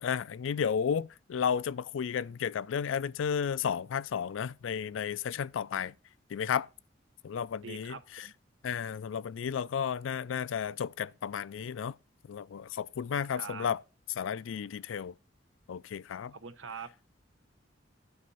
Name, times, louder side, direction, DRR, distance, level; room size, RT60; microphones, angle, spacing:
voice 1, 0.0-5.9 6.3-6.7 7.2-8.3 8.6-12.0 12.3-13.8 14.2-15.1 15.7-16.3, left 7 dB, 90° left, 0.4 m, -33 dB
voice 2, 7.6-8.3 13.3-13.7 16.3-16.9, right 5 dB, 85° right, 0.8 m, -43 dB
9.5 x 4.3 x 5.4 m
head